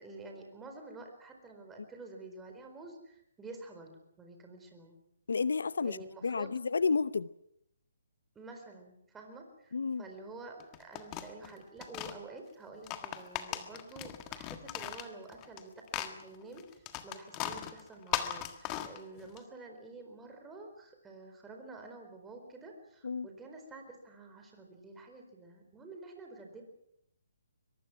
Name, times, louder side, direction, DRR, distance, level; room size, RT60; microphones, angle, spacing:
voice 1, 0.0-5.0 5.8-6.6 8.3-26.6, right 3 dB, 10° right, 3 dB, 4.4 m, -49 dB
voice 2, 5.3-7.3 9.7-10.0 23.0-23.3, left 4 dB, 80° left, 17 dB, 0.8 m, -31 dB
sound 1, 10.6-12.2 12.7-15.6 15.9-19.4, left 12 dB, 20° left, 1.6 m, -38 dB
23.0 x 22.5 x 6.1 m, 0.72 s
hypercardioid pair, 155°, 0 cm